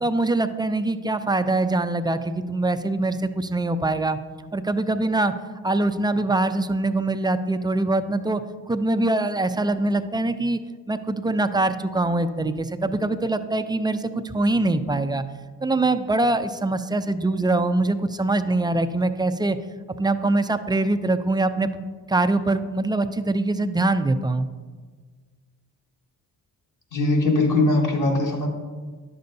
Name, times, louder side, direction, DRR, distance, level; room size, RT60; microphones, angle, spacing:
voice 1, 0.0-4.2 4.5-5.3 5.6-8.4 8.7-10.6 10.9-15.2 15.6-19.6 20.0-24.5, right 2 dB, 10° right, 9 dB, 0.3 m, -23 dB
voice 2, 26.9-28.5, left 2 dB, 50° left, 0 dB, 1.7 m, -20 dB
10.5 x 6.8 x 2.6 m, 1.5 s
cardioid pair, 70°, 40 cm